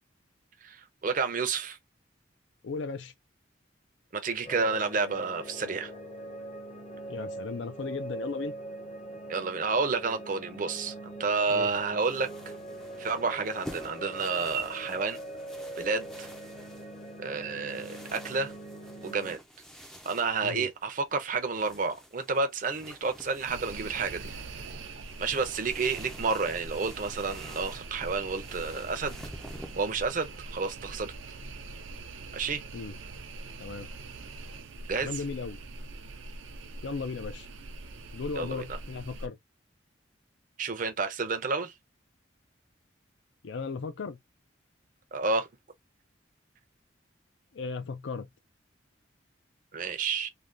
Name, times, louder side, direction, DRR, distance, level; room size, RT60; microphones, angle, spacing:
voice 1, 0.6-1.8 4.1-5.9 9.3-12.3 13.0-15.2 15.8-16.3 17.2-18.5 19.0-19.4 20.1-24.4 25.2-29.2 29.7-31.1 32.3-32.6 34.9-35.2 38.4-38.6 40.6-41.7 45.1-45.5 49.7-50.3, right 4 dB, 45° right, 0.6 m, -30 dB
voice 2, 2.6-3.1 7.1-8.6 11.5-11.7 20.4-20.7 32.7-33.0 33.6-33.9 35.0-35.6 36.8-37.5 38.1-39.4 43.4-44.2 47.5-48.3, left 4 dB, 70° left, 0.5 m, -36 dB
sound 1, 4.4-19.4, right 1 dB, 35° left, 0.8 m, -42 dB
sound 2, 12.0-29.9, equal, 5° left, 0.4 m, -50 dB
sound 3, 23.5-39.3, right 3 dB, 85° right, 0.6 m, -43 dB
3.3 x 2.2 x 2.5 m
head